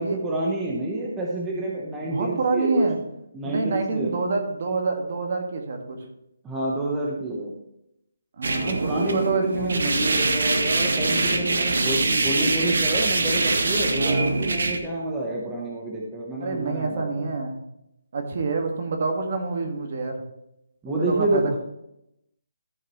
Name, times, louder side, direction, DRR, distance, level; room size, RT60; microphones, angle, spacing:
voice 1, 0.0-2.8 3.3-4.2 6.4-7.5 8.6-17.3 20.8-21.6, right 2 dB, 10° right, -3 dB, 1.0 m, -28 dB
voice 2, 2.0-3.0 3.4-6.0 8.4-9.9 11.7-11.8 13.9-14.4 16.4-17.6 18.1-20.2 20.9-21.6, right 3 dB, 45° right, 3 dB, 1.8 m, -27 dB
sound 1, 8.4-14.8, right 3 dB, 80° right, 1.5 m, -24 dB
14.0 x 6.5 x 3.1 m, 0.82 s
hypercardioid pair, 175°, 0 cm